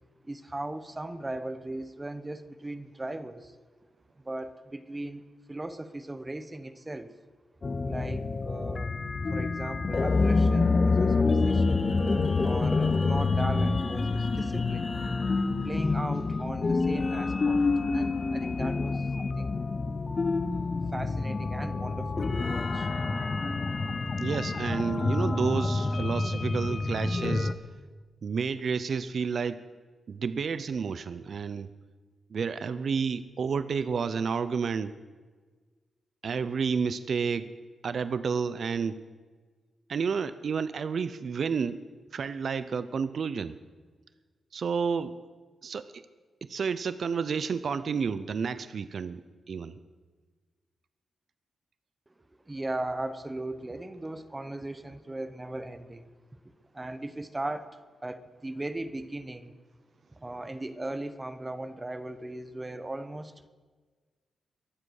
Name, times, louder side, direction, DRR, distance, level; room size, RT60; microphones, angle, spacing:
voice 1, 0.2-3.5 4.2-5.2 5.5-7.1 7.8-9.0 9.3-11.8 12.4-14.9 15.6-19.6 20.9-22.9 52.5-56.1 56.7-59.6 60.2-63.5, right 2 dB, 20° right, 12 dB, 0.9 m, -38 dB
sound 1, 7.6-27.5, left 3 dB, 35° left, 0.8 m, -27 dB
voice 2, 24.2-27.5 28.2-29.6 30.1-31.7 32.3-34.9 36.2-37.5 37.8-39.0 39.9-41.8 42.1-43.6 44.5-45.2 45.6-46.0 46.4-49.2 49.5-49.8, right 6 dB, 60° right, 13 dB, 0.6 m, -30 dB
22.0 x 7.7 x 6.5 m, 1.4 s
cardioid pair, 95°, 0 cm